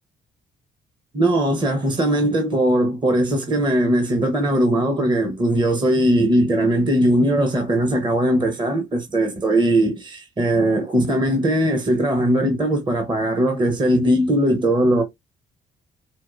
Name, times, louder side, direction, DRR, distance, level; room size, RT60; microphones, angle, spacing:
voice 1, 1.1-15.0, right 1 dB, 25° right, 0.9 m, -19 dB
4.4 x 3.0 x 2.4 m
cardioid pair, 90°, 20 cm